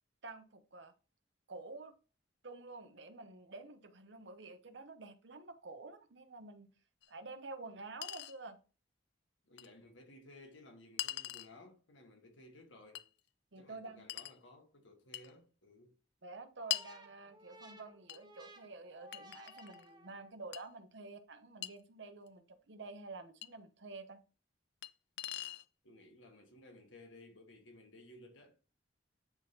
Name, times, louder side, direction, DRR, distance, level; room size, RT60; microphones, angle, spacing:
voice 1, 0.2-0.9 1.5-1.9 2.4-6.7 7.1-8.6 13.5-14.0 16.2-24.2, right 3 dB, 70° right, 0.9 m, -49 dB
Chink clink, 7.0-7.1 8.0-8.4 9.6-9.7 11.0-11.5 13.0-13.1 14.1-14.4 15.1-15.3 16.7-16.9 18.1-18.2 19.1-19.9 20.5-20.6 21.6-21.7 23.4-23.5 24.8-24.9 25.2-25.7, left 14 dB, 55° left, 0.3 m, -41 dB
voice 2, 9.4-13.1 13.5-16.0 25.8-28.6, left 1 dB, 80° left, 1.7 m, -58 dB
sound 1, 16.6-20.5, right 1 dB, 20° right, 0.9 m, -58 dB
10.0 x 3.7 x 2.8 m
head